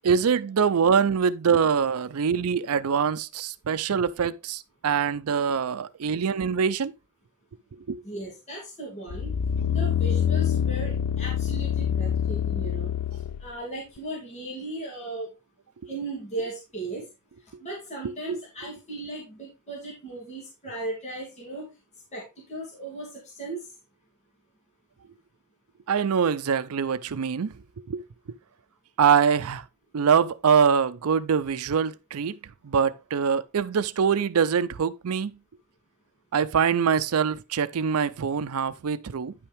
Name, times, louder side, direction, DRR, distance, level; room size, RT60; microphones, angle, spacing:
voice 1, 0.0-6.9 7.9-8.0 18.3-18.4 25.9-27.5 27.9-28.0 29.0-29.6 29.9-32.3 32.6-35.3 36.3-39.3, right 6 dB, 80° right, 0.5 m, -24 dB
voice 2, 8.0-9.3 9.7-12.9 13.4-15.3 15.9-17.0 17.6-21.7 22.1-23.6, right 2 dB, 30° left, 2.7 m, -36 dB
sound 1, 9.1-13.5 14.0-14.1, left 9 dB, 90° left, 0.4 m, -26 dB
10.0 x 5.7 x 3.4 m
head